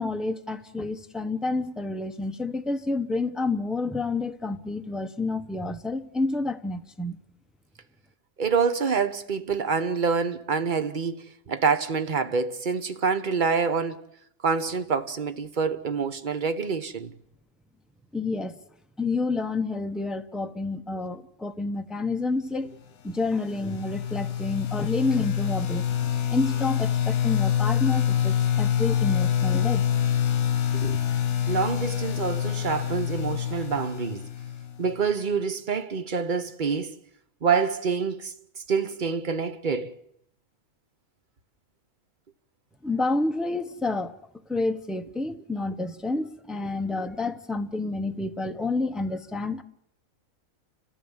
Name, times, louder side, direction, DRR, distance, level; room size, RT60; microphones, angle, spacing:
voice 1, 0.0-7.2 18.1-18.6 19.0-22.7 23.0-25.9 26.3-29.8 42.8-44.1 44.5-49.6, left 3 dB, ahead, 0.6 m, -29 dB
voice 2, 8.4-11.1 11.5-14.0 14.4-17.1 30.7-31.0 31.5-34.2 34.8-37.0 37.4-38.3 38.7-39.9 46.6-46.7, right 5 dB, 40° right, 1.1 m, -26 dB
sound 1, 23.2-35.0, left 9 dB, 85° left, 1.6 m, -26 dB
30.0 x 14.5 x 7.2 m
omnidirectional pair, 1.5 m